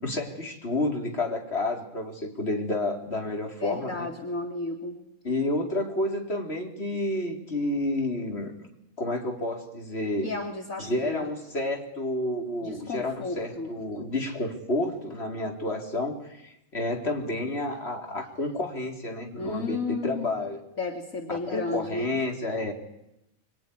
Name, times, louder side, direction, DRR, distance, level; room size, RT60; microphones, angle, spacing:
voice 1, 0.0-4.0 5.2-8.5 9.0-10.3 10.8-20.6 21.3-22.7, left 2 dB, 45° left, 2 dB, 3.9 m, -30 dB
voice 2, 3.6-5.0 10.2-11.3 12.6-13.7 19.4-20.4 20.8-22.2, left 3 dB, 70° left, 3 dB, 2.8 m, -33 dB
25.5 x 22.0 x 10.0 m, 0.85 s
omnidirectional pair, 1.5 m